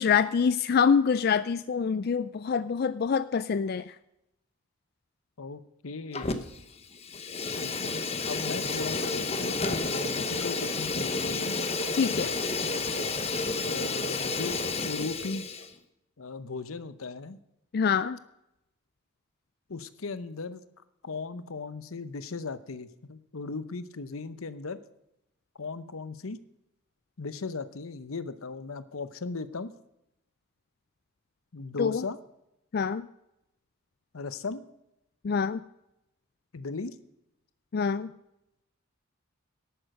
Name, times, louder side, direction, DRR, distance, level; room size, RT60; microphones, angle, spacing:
voice 1, 0.0-3.8 12.0-12.3 17.7-18.2 31.8-32.0 32.7-33.0 35.2-35.6 37.7-38.1, left 6 dB, 45° left, 14 dB, 0.3 m, -25 dB
voice 2, 5.4-6.4 7.4-11.6 13.7-14.6 14.8-15.4 16.2-17.4 19.7-20.6 21.0-24.8 25.5-26.4 27.2-29.7 31.5-32.2 34.1-34.6 36.5-37.0, left 4 dB, 85° left, 13 dB, 0.8 m, -37 dB
Fire, 6.1-6.7 6.9-15.7, left 3 dB, 30° left, 0.9 m, -31 dB
11.5 x 9.0 x 6.5 m, 0.85 s
head